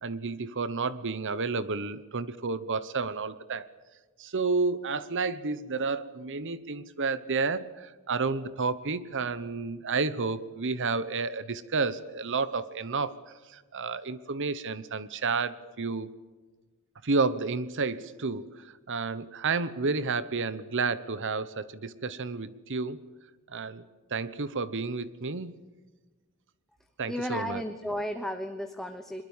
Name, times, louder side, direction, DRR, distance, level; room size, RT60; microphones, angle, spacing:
voice 1, 0.0-3.7 4.2-13.2 13.5-16.1 17.0-23.1 23.5-25.5 27.0-27.6, right 4 dB, 60° right, 16 dB, 1.0 m, -31 dB
voice 2, 27.1-29.2, equal, ahead, 6 dB, 1.2 m, -33 dB
23.5 x 22.0 x 7.3 m, 1.3 s
head